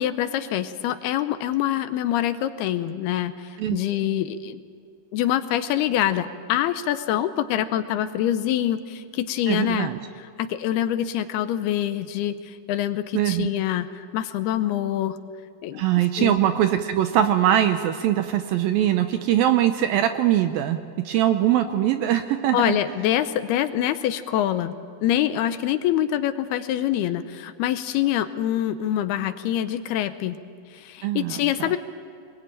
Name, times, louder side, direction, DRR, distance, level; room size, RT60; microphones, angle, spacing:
voice 1, 0.0-4.6 5.1-9.9 10.2-15.2 15.6-16.4 22.5-24.7 25.0-30.4 30.7-31.8, left 11 dB, 80° left, 11 dB, 2.6 m, -25 dB
voice 2, 9.5-10.0 13.1-13.5 15.7-22.8 31.0-31.7, right 11 dB, 75° right, 8 dB, 2.2 m, -22 dB
24.5 x 21.5 x 8.9 m, 2.3 s
omnidirectional pair, 4.8 m